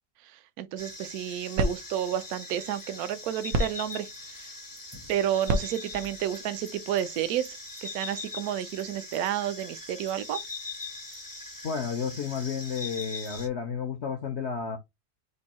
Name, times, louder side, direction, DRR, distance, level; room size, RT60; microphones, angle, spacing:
voice 1, 0.2-4.5 5.1-10.4, right 11 dB, 70° right, 1.0 m, -31 dB
sound 1, 0.8-13.5, left 3 dB, 25° left, 0.4 m, -41 dB
sound 2, 1.0-7.4, right 1 dB, 85° right, 1.6 m, -35 dB
voice 2, 11.6-14.8, left 6 dB, 60° left, 0.7 m, -32 dB
4.5 x 2.7 x 4.1 m
omnidirectional pair, 1.9 m